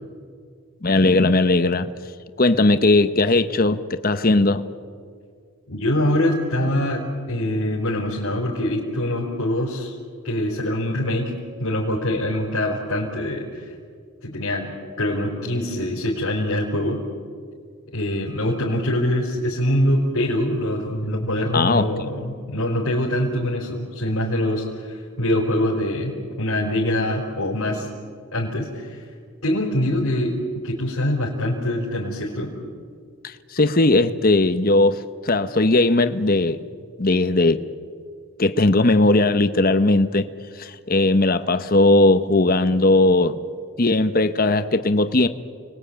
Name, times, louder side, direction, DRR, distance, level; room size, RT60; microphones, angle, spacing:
voice 1, 0.8-1.9 2.4-4.6 21.5-21.9 33.2-36.6 37.0-37.6 38.4-40.3 40.6-43.4 43.8-45.3, left 2 dB, 40° left, 11 dB, 1.0 m, -18 dB
voice 2, 5.7-9.9 10.2-11.3 11.6-13.7 14.2-14.7 15.0-17.0 17.9-27.9 28.3-29.0 29.4-32.5, left 1 dB, 90° left, -3 dB, 4.4 m, -24 dB
30.0 x 21.0 x 8.7 m, 2.1 s
head